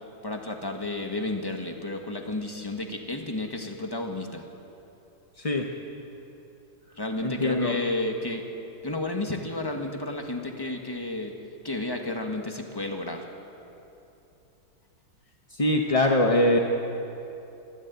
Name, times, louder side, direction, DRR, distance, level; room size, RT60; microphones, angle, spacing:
voice 1, 0.2-4.4 7.0-8.4 8.8-11.3 11.6-13.2, left 2 dB, 15° left, 3 dB, 1.5 m, -32 dB
voice 2, 5.4-5.7 7.2-7.8 15.5-16.6, left 1 dB, 30° left, 2 dB, 0.6 m, -22 dB
25.5 x 11.0 x 9.3 m, 2.9 s
omnidirectional pair, 2.2 m